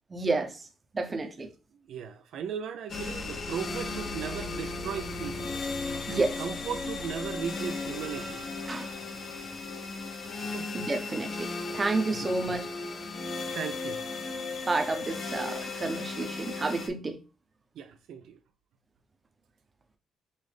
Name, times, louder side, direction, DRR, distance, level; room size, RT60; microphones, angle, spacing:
voice 1, 0.1-0.5 0.9-1.5 5.9-6.4 8.0-8.9 10.7-12.7 14.7-17.2, right 3 dB, 30° right, 0.7 m, -31 dB
voice 2, 1.9-5.4 6.1-8.4 10.4-10.7 12.1-12.3 13.5-14.1 17.8-18.4, right 7 dB, 75° right, 0.4 m, -37 dB
sound 1, 2.9-16.9, left 3 dB, 50° left, 0.7 m, -36 dB
5.5 x 2.0 x 3.3 m
cardioid pair, 90°, 0 cm